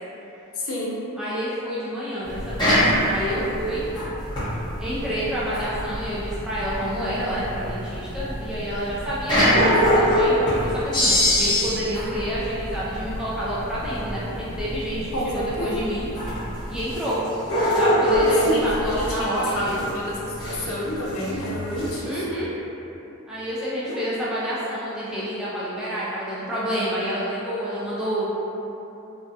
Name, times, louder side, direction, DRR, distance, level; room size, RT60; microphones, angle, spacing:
voice 1, 0.6-1.0 15.1-15.7 18.4-19.7 19.9-22.1 23.9-24.0, left 1 dB, 70° left, -5 dB, 0.5 m, -29 dB
voice 2, 1.2-3.8 4.8-16.1 16.7-17.3 17.7-19.8 22.0-22.5 23.3-28.3, equal, 5° right, -10 dB, 0.3 m, -28 dB
sound 1, 2.2-22.0, equal, 20° left, 1.0 m, -24 dB
2.4 x 2.2 x 2.7 m, 3.0 s
head